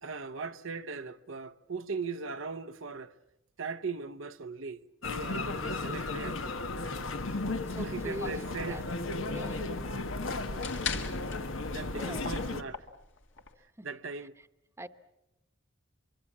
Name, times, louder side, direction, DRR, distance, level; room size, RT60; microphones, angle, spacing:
voice 1, 0.0-3.1 3.6-6.6 7.3-7.4 7.8-8.8 10.5-10.9 11.6-12.9 13.8-14.3, right 4 dB, 80° right, 0.8 m, -39 dB
sound 1, 5.0-12.6, left 3 dB, 85° left, 1.3 m, -35 dB
voice 2, 7.6-8.9 9.1-9.7 11.9-12.3 13.8-14.3 14.8-14.9, right 1 dB, 15° right, 1.0 m, -43 dB
sound 2, 10.6-13.5, left 5 dB, 65° left, 1.9 m, -40 dB
24.5 x 24.5 x 7.4 m
head